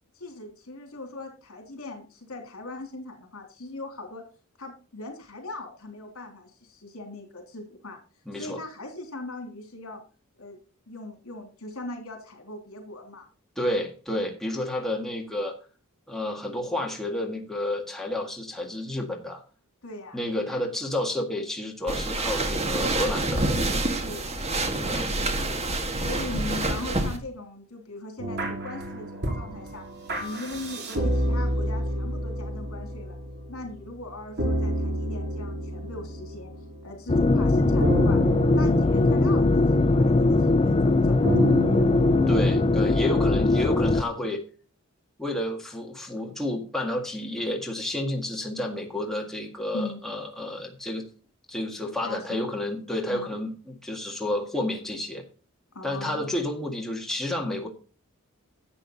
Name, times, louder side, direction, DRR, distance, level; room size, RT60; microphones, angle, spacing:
voice 1, 0.2-4.2 4.6-8.0 8.3-10.0 10.4-10.6 10.9-13.3 19.8-20.3 23.9-24.4 24.8-25.1 25.9-29.9 30.2-33.2 33.5-36.5 36.8-38.2 38.5-41.8 49.7-50.0 52.0-52.5 53.1-53.4 55.7-56.3, left 2 dB, 70° left, 4 dB, 3.5 m, -39 dB
voice 2, 8.3-8.6 13.6-15.5 16.1-19.4 20.1-23.4 24.8-25.1 42.3-44.4 45.2-51.1 51.5-55.2 55.8-57.7, left 1 dB, ahead, 0 dB, 1.9 m, -30 dB
sound 1, 21.9-27.2, right 2 dB, 30° right, 1.7 m, -27 dB
sound 2, 28.2-37.2 37.8-44.3, right 1 dB, 50° right, 2.8 m, -31 dB
sound 3, 37.1-44.0, left 2 dB, 25° left, 0.5 m, -20 dB
11.5 x 8.0 x 4.1 m, 0.36 s
head